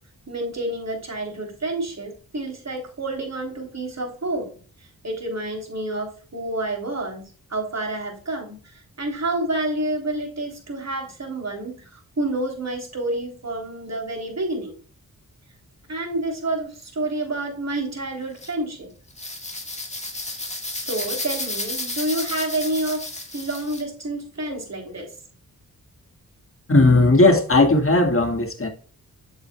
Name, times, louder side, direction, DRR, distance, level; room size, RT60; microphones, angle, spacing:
voice 1, 0.3-4.6 5.0-14.7 15.9-18.9 20.7-23.0 23.3-25.1, right 2 dB, 45° right, 3.5 m, -29 dB
sound 1, 18.4-18.5 19.1-23.8, left 2 dB, 20° left, 2.0 m, -32 dB
voice 2, 26.7-28.7, left 2 dB, 35° left, 1.9 m, -16 dB
8.1 x 7.3 x 2.3 m
cardioid pair, 45°, 36 cm